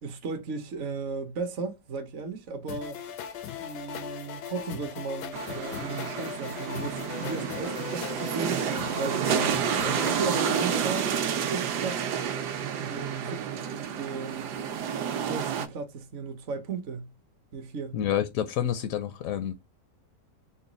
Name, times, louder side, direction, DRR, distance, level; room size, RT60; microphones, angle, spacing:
voice 1, 0.0-3.0 3.6-8.6 9.0-12.0 12.5-14.5 15.2-17.1 17.5-18.0, right 4 dB, 55° right, 0.9 m, -36 dB
sound 1, 2.7-10.8, left 9 dB, 90° left, 1.3 m, -38 dB
sound 2, 5.3-15.7, right 8 dB, 75° right, 1.2 m, -30 dB
voice 2, 17.9-19.5, left 10 dB, 70° left, 0.8 m, -28 dB
3.9 x 2.2 x 3.8 m
omnidirectional pair, 1.8 m